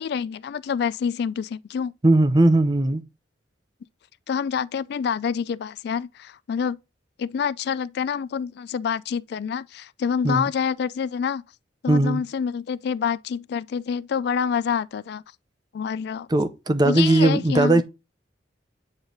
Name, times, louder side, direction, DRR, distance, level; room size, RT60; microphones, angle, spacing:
voice 1, 0.0-1.9 4.3-6.8 7.2-11.4 11.8-15.2 15.7-16.3 16.8-17.8, left 7 dB, 60° left, 0.3 m, -27 dB
voice 2, 2.0-3.0 10.2-10.4 11.9-12.2 16.3-17.8, right 2 dB, 20° right, 0.5 m, -18 dB
8.8 x 3.2 x 3.9 m
head